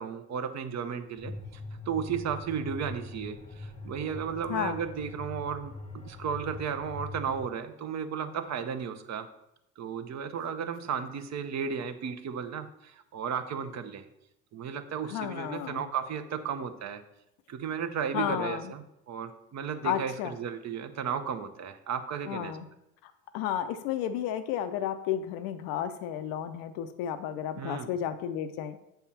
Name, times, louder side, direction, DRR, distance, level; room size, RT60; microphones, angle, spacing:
voice 1, 0.0-1.6 1.9-9.3 9.8-14.0 14.5-17.0 17.5-22.6 27.5-27.9, right 7 dB, 45° right, 10 dB, 0.8 m, -34 dB
sound 1, 1.2-7.5, left 2 dB, 20° left, 0.8 m, -42 dB
voice 2, 4.5-4.8 15.1-15.9 18.1-18.7 19.8-20.3 22.3-22.7 23.0-28.8, left 10 dB, 70° left, 9 dB, 0.6 m, -32 dB
7.4 x 3.5 x 5.7 m, 0.85 s
supercardioid pair, 80°, 37 cm